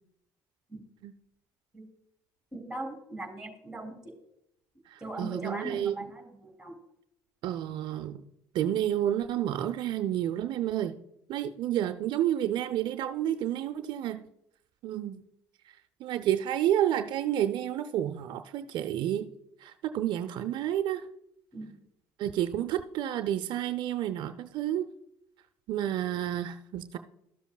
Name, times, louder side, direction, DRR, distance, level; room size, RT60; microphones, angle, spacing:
voice 1, 2.5-4.1 5.0-6.7 21.5-21.8, right 2 dB, 5° right, 4 dB, 3.1 m, -40 dB
voice 2, 4.9-5.9 7.4-8.2 8.5-11.0 11.3-14.2 14.8-15.2 16.0-19.3 19.6-21.0 22.2-24.9 25.7-27.0, right 11 dB, 60° right, 8 dB, 0.5 m, -30 dB
13.5 x 7.0 x 2.3 m, 0.77 s
supercardioid pair, 80°, 9 cm